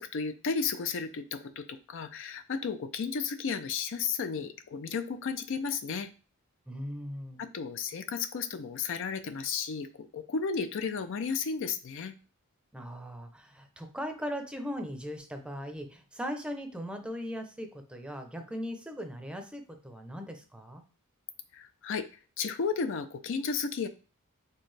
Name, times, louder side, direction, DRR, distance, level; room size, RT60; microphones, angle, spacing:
voice 1, 0.0-6.1 7.4-12.1 21.5-22.0 22.4-23.9, left 5 dB, 60° left, 10 dB, 0.4 m, -33 dB
voice 2, 6.7-7.4 12.7-20.8, equal, 5° right, 5 dB, 0.6 m, -39 dB
4.5 x 3.4 x 3.2 m, 0.37 s
head